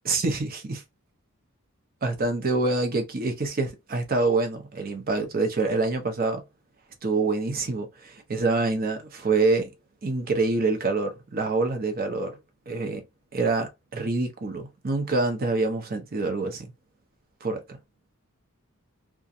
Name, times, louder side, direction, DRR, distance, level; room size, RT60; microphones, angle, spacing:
voice 1, 0.1-0.8 2.0-6.4 7.0-9.7 10.0-12.4 12.7-13.0 13.3-16.7 17.4-17.6, right 3 dB, 45° right, 0.7 m, -26 dB
2.4 x 2.3 x 2.6 m
head